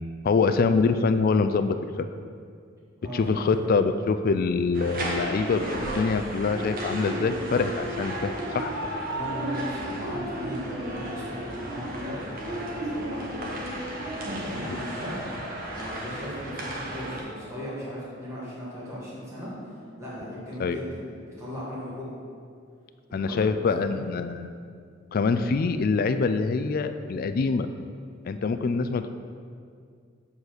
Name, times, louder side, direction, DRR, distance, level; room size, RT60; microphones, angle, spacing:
voice 1, 0.2-2.1 3.1-8.7 20.6-20.8 23.1-24.5 25.1-27.7 28.2-29.1, left 4 dB, 45° left, 9 dB, 0.3 m, -25 dB
voice 2, 3.0-3.6 9.1-13.4 14.1-15.2 15.7-19.5 20.0-21.0 21.4-22.1 23.1-23.4 23.8-24.1, left 1 dB, 15° right, -10 dB, 1.8 m, -37 dB
sound 1, 4.7-17.2, right 1 dB, 45° right, 1.3 m, -33 dB
7.1 x 4.1 x 6.5 m, 2.2 s
head